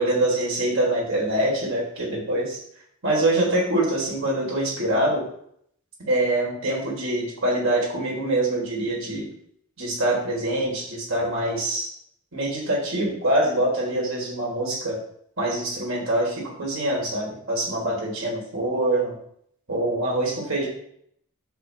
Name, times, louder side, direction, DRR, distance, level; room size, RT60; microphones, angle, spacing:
voice 1, 0.0-2.6 3.0-5.3 6.1-9.3 9.8-11.9 12.3-15.0 15.4-19.2 19.7-20.7, right 1 dB, 65° right, -2 dB, 4.0 m, -24 dB
10.0 x 8.2 x 3.5 m, 0.68 s
head